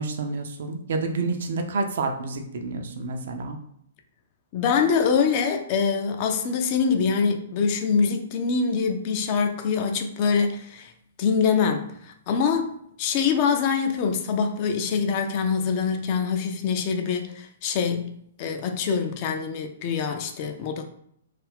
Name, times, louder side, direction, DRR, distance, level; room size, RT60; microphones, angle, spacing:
voice 1, 0.0-3.6, right 3 dB, 55° right, 0.4 m, -29 dB
voice 2, 4.5-10.9 11.2-11.9 12.3-12.7 13.0-20.8, left 6 dB, 35° left, 0.3 m, -24 dB
2.4 x 2.2 x 3.4 m
figure-of-eight pair, 115°, 0 cm